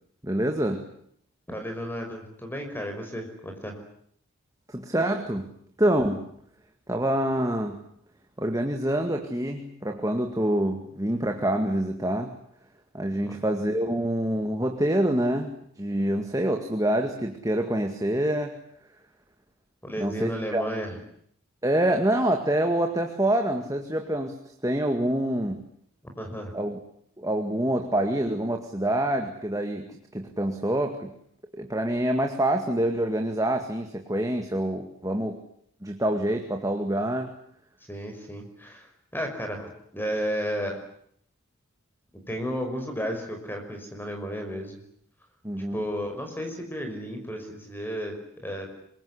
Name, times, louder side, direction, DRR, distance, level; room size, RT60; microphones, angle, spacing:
voice 1, 0.2-0.9 4.7-6.3 6.9-7.8 8.4-12.4 12.9-18.5 20.0-20.6 21.6-24.4 24.6-25.7 26.5-26.8 27.2-31.1 31.5-35.4 35.8-37.3 45.4-45.9, right 1 dB, 15° right, 4 dB, 2.1 m, -26 dB
voice 2, 1.5-3.8 13.2-13.4 19.8-21.0 26.2-26.5 37.9-38.9 39.1-40.8 42.3-44.8 45.7-48.7, equal, 10° left, 4 dB, 5.8 m, -33 dB
26.0 x 22.5 x 9.9 m, 0.68 s
head